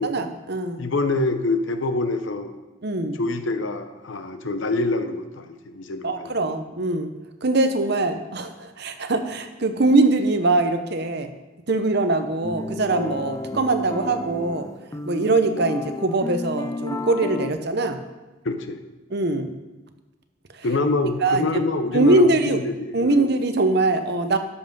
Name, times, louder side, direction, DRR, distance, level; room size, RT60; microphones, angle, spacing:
voice 1, 0.0-0.8 2.8-3.2 6.0-7.1 7.4-11.3 11.7-14.7 15.1-18.0 19.1-19.5 20.5-20.7 21.2-21.6 21.9-22.6 22.9-24.4, right 2 dB, 50° right, 8 dB, 0.8 m, -22 dB
voice 2, 0.8-2.5 3.1-6.3 18.4-18.8 20.6-23.3, left 2 dB, 65° left, 8 dB, 0.8 m, -26 dB
sound 1, 12.4-17.5, left 2 dB, 15° left, 0.4 m, -32 dB
12.5 x 5.6 x 5.3 m, 1.1 s
head